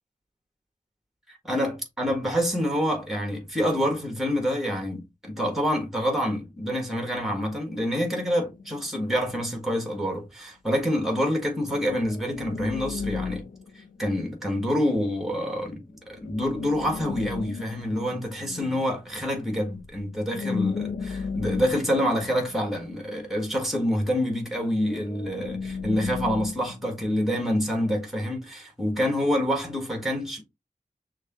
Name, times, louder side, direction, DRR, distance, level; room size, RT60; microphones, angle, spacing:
voice 1, 1.4-13.4 13.7-30.4, equal, ahead, 1.6 m, -27 dB
sound 1, 8.2-9.4 11.6-14.6 16.1-19.1 19.8-20.0 20.3-23.3 24.8-27.4 27.8-28.0, left 5 dB, 75° left, 0.4 m, -35 dB
6.2 x 2.3 x 3.0 m
wide cardioid pair, 90°, 14 cm